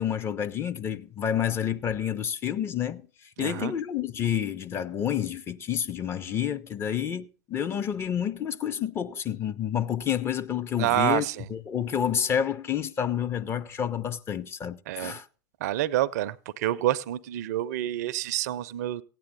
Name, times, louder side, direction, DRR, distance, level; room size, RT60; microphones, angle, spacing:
voice 1, 0.0-3.0 3.4-15.3, left 9 dB, 25° left, 0.5 m, -29 dB
voice 2, 3.4-3.7 10.8-11.5 14.9-15.1 15.6-19.0, right 14 dB, 50° right, 0.4 m, -28 dB
16.0 x 9.0 x 4.0 m
figure-of-eight pair, 90°, 11 cm